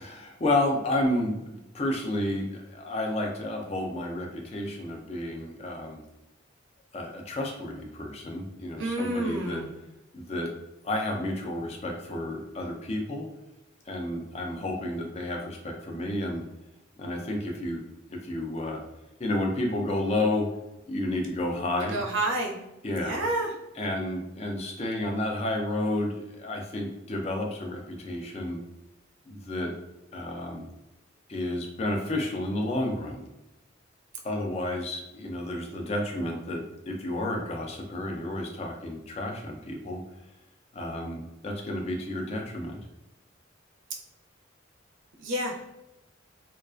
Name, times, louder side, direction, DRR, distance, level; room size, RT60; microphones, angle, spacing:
voice 1, 0.0-6.0 6.9-9.6 10.1-10.5 10.8-13.3 13.9-16.4 17.0-17.8 18.1-18.8 19.2-20.5 20.9-22.0 22.8-23.2 23.8-28.6 29.3-29.7 30.1-30.7 31.3-33.3 34.2-40.0 40.7-42.8, left 1 dB, 35° left, 1 dB, 0.4 m, -31 dB
voice 2, 8.8-9.7 21.9-22.6 22.9-23.5 45.2-45.7, right 1 dB, 80° right, 1 dB, 0.5 m, -29 dB
2.3 x 2.2 x 2.4 m, 0.92 s
head